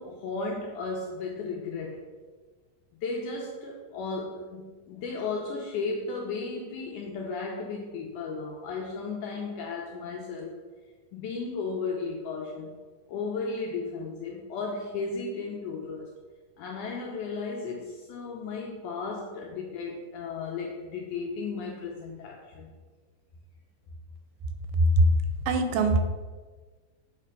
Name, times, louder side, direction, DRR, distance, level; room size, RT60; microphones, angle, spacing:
voice 1, 0.0-2.1 3.0-10.6 11.1-12.8 13.1-16.1 16.6-22.7, left 4 dB, 80° left, 0 dB, 1.8 m, -35 dB
voice 2, 24.7-26.0, right 1 dB, 85° right, 6 dB, 2.3 m, -22 dB
6.6 x 3.2 x 5.2 m, 1.4 s
omnidirectional pair, 4.2 m